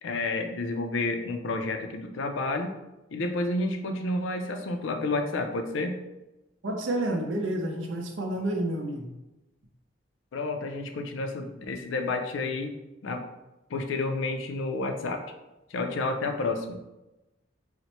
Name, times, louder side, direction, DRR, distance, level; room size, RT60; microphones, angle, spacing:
voice 1, 0.0-2.8 3.1-6.0 10.3-12.7 13.0-13.2 13.7-15.3 15.7-16.9, left 2 dB, 75° left, 6 dB, 0.4 m, -30 dB
voice 2, 6.6-9.1, right 1 dB, 75° right, 2 dB, 0.6 m, -29 dB
4.2 x 2.1 x 2.9 m, 1.0 s
head